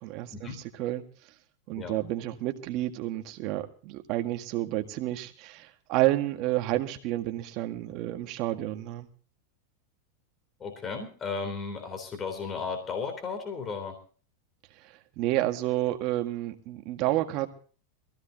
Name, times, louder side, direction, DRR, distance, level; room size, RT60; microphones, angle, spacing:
voice 1, 0.0-0.5 0.8-1.0 1.7-9.1 14.8-17.5, right 15 dB, 45° right, 6 dB, 1.9 m, -30 dB
voice 2, 10.6-13.9, left 5 dB, 20° left, 5 dB, 3.6 m, -34 dB
22.5 x 16.0 x 2.9 m, 0.40 s
supercardioid pair, 150°, 0 cm